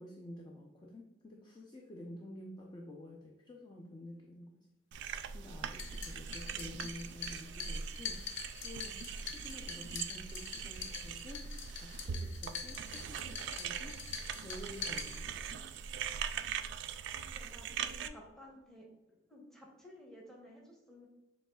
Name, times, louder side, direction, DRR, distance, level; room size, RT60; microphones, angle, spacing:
voice 1, 0.0-4.6 5.0-11.5 11.8-14.0 14.4-15.5, left 1 dB, 25° left, 0 dB, 0.5 m, -50 dB
sound 1, 4.9-18.1, right 7 dB, 65° right, 0.3 m, -41 dB
sound 2, 5.6-15.6, left 6 dB, 80° left, 0.7 m, -45 dB
voice 2, 17.3-18.9 19.3-21.1, left 1 dB, ahead, -2 dB, 0.9 m, -54 dB
7.1 x 3.2 x 2.3 m, 1.0 s
head